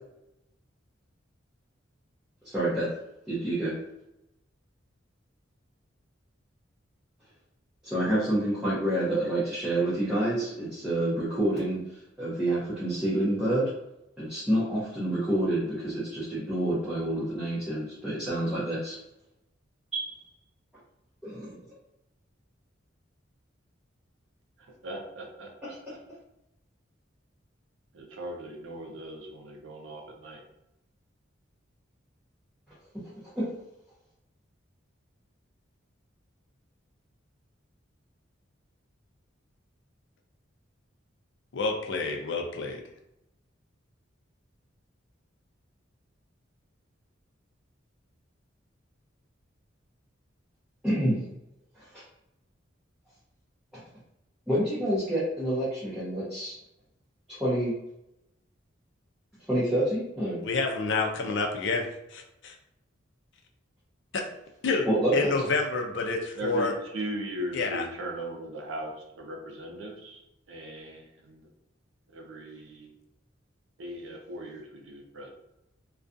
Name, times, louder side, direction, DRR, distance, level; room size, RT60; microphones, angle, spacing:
voice 1, 2.4-2.9 3.3-3.7 7.8-11.8 12.2-13.7 14.2-19.0 19.9-20.2 21.2-21.5 25.6-25.9 33.4-33.5 50.8-51.2 51.9-52.0 54.5-56.6 57.3-57.7 59.5-60.4 64.8-65.3, right 1 dB, 5° right, -11 dB, 0.7 m, -28 dB
voice 2, 24.8-26.0 27.9-30.4 66.4-66.7 66.9-70.2 70.5-71.4 72.1-72.9 73.8-75.3, right 1 dB, 75° right, 1 dB, 0.6 m, -39 dB
voice 3, 41.5-42.8 60.4-62.5 64.1-64.2 64.6-64.9 65.1-66.7 67.5-67.8, left 3 dB, 70° left, 2 dB, 0.5 m, -28 dB
2.4 x 2.3 x 2.5 m, 0.85 s
head